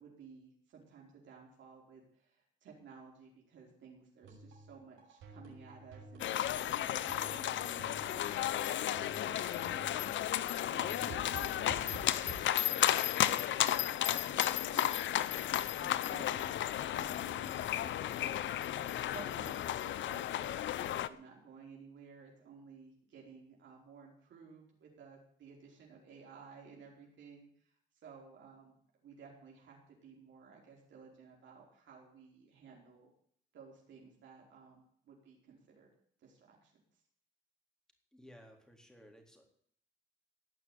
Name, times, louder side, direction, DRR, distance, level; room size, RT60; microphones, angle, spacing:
voice 1, 0.0-12.1 12.5-18.7 19.1-28.7 29.0-33.1 33.5-35.9 36.2-36.7, right 5 dB, 70° right, -2 dB, 4.7 m, -56 dB
sound 1, 4.2-12.4, right 3 dB, 85° right, 6.2 m, -51 dB
sound 2, 6.2-21.1, left 12 dB, 70° left, 0.8 m, -33 dB
voice 2, 38.1-39.5, equal, 5° left, 2 dB, 4.0 m, -57 dB
17.5 x 6.0 x 9.9 m, 0.63 s
cardioid pair, 90°, 20 cm